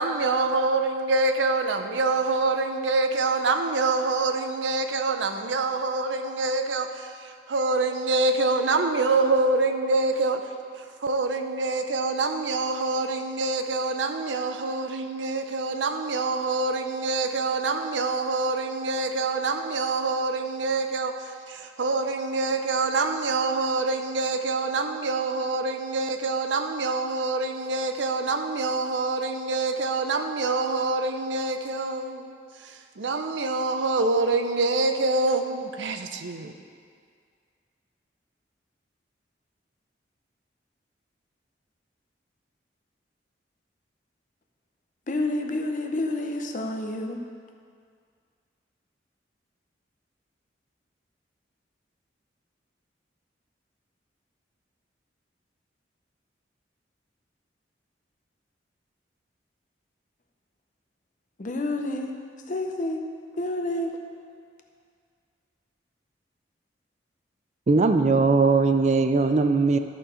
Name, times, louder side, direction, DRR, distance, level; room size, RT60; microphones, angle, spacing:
voice 1, 0.0-10.4 10.8-36.5, right 3 dB, 85° right, 7 dB, 0.6 m, -26 dB
voice 2, 45.1-47.2 61.4-62.2 62.5-63.0 63.4-64.0, left 2 dB, 45° left, 4 dB, 0.7 m, -29 dB
voice 3, 67.7-69.8, right 4 dB, 40° right, 8 dB, 0.4 m, -20 dB
13.5 x 4.5 x 5.0 m, 2.1 s
head